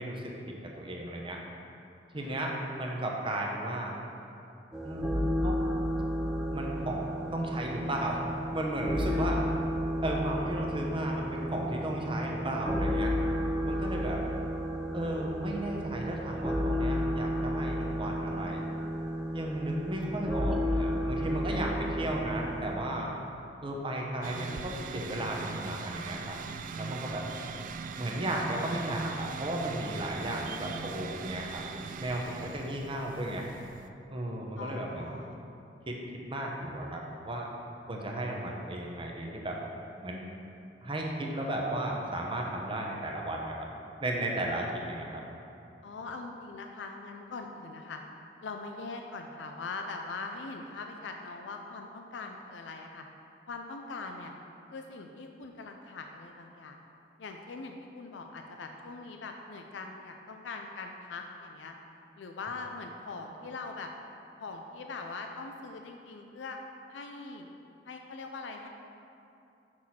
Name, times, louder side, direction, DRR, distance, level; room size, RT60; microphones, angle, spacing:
voice 1, 0.0-1.4 2.1-4.0 4.8-5.6 6.5-7.0 7.3-8.3 8.5-9.4 10.0-13.1 13.6-14.2 14.9-18.6 19.3-23.1 23.6-26.4 26.7-27.3 28.0-31.6 32.0-33.5 34.1-35.4 35.9-36.0 36.3-37.5 37.9-39.6 40.0-40.2 40.8-43.6 44.0-45.2, right 1 dB, 30° right, -1 dB, 0.8 m, -34 dB
voice 2, 2.2-2.5 9.1-9.4 13.7-14.4 27.0-27.2 32.6-32.8 34.6-35.4 45.8-48.0 48.4-53.1 53.5-54.3 54.7-56.8 57.2-61.7 62.2-63.9 64.4-66.6 66.9-67.5 67.8-68.7, left 3 dB, 85° left, 4 dB, 0.4 m, -42 dB
sound 1, 4.7-22.7, equal, 5° right, 0.6 m, -32 dB
sound 2, 24.2-33.9, right 5 dB, 50° right, 0.3 m, -41 dB
6.3 x 6.0 x 4.3 m, 2.7 s
head